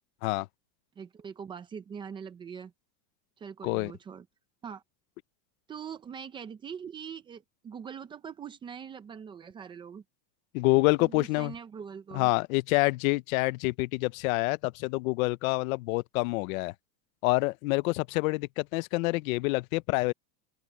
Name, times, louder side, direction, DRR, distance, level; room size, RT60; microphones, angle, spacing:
voice 1, 1.0-2.7 3.4-4.3 4.6-4.8 5.7-10.0 11.0-12.3, right 7 dB, 10° right, 0.4 m, -42 dB
voice 2, 10.5-11.5 12.1-16.7 17.2-20.1, left 23 dB, 55° left, 0.7 m, -27 dB
open air
supercardioid pair, 155°, 49 cm